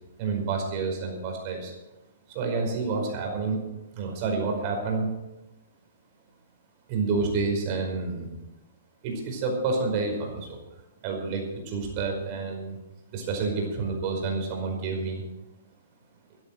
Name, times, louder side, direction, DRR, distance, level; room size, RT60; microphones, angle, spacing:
voice 1, 0.2-1.7 2.3-3.6 3.9-5.1 6.9-8.3 9.0-10.6 11.0-12.8 13.1-15.2, right 4 dB, 35° right, 2 dB, 5.0 m, -29 dB
14.0 x 10.5 x 6.6 m, 0.98 s
hypercardioid pair, 155°, 0 cm